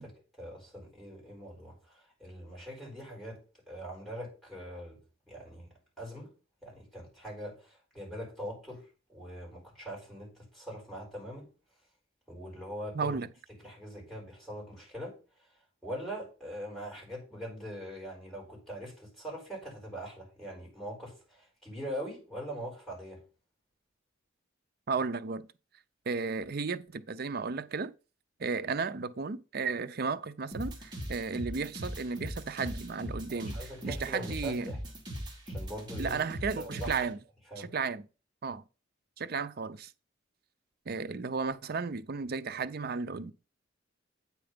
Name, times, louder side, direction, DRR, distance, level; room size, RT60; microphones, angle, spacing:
voice 1, 0.0-5.0 5.3-6.3 6.6-11.5 12.3-13.2 13.5-15.5 15.8-23.2 33.3-34.8 35.4-36.2 36.6-36.9 37.5-37.7, equal, ahead, 4.8 m, -42 dB
voice 2, 12.9-13.3 24.9-25.5 26.1-27.9 28.4-34.7 36.0-37.2 37.6-38.1 38.4-38.6 39.2-39.9 40.9-43.3, right 4 dB, 55° right, 0.6 m, -34 dB
sound 1, 30.5-37.0, equal, 25° right, 2.4 m, -39 dB
8.7 x 4.6 x 5.1 m
head